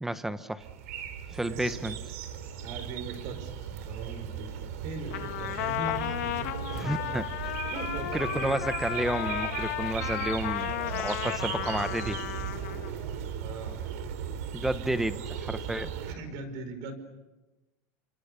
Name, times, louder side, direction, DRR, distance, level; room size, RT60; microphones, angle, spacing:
voice 1, 0.0-0.6 1.3-2.0 6.7-7.2 8.1-12.2 14.5-15.9, right 1 dB, 5° right, 12 dB, 0.9 m, -31 dB
sound 1, 0.6-16.1, right 8 dB, 75° right, 3.6 m, -37 dB
voice 2, 1.5-1.8 2.6-4.5 4.8-8.6 13.4-13.8 16.0-16.9, right 3 dB, 45° right, 9 dB, 5.2 m, -40 dB
Trumpet, 5.1-12.9, left 16 dB, 85° left, 1.5 m, -34 dB
sound 2, 8.5-14.0, left 6 dB, 20° left, 3.1 m, -52 dB
29.5 x 26.5 x 6.9 m, 1.1 s
supercardioid pair, 165°, 8 cm